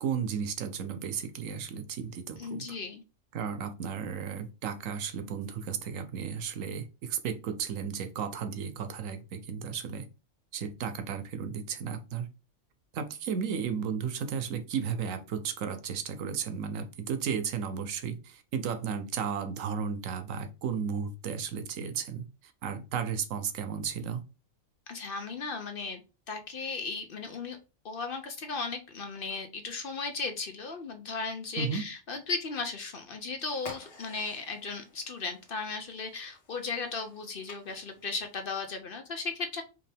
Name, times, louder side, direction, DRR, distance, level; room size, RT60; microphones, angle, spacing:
voice 1, 0.0-2.7 3.3-10.1 10.5-12.3 12.9-22.3 22.6-24.2 31.6-31.8, right 7 dB, 85° right, 1.1 m, -34 dB
voice 2, 2.4-3.0 24.9-26.0 26.3-27.6 27.8-39.6, left 4 dB, 55° left, 0.7 m, -36 dB
sound 1, 33.6-38.8, left 3 dB, 75° left, 1.5 m, -52 dB
5.1 x 2.8 x 3.4 m
omnidirectional pair, 1.3 m